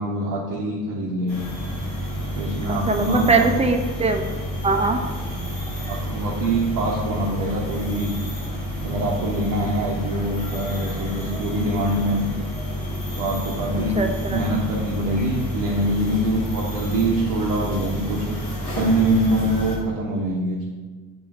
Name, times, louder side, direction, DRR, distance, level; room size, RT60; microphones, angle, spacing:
voice 1, 0.0-1.4 2.3-3.5 5.9-8.2 8.8-12.3 13.2-14.0 14.3-18.2 18.7-20.6, right 1 dB, 60° right, -5 dB, 1.2 m, -24 dB
sound 1, 1.3-19.8, equal, 80° left, 1.7 m, -29 dB
voice 2, 2.7-4.3 4.6-5.0 13.7-14.4, right 3 dB, 15° right, 4 dB, 0.7 m, -21 dB
7.2 x 3.1 x 5.0 m, 1.3 s
figure-of-eight pair, 50°, 47 cm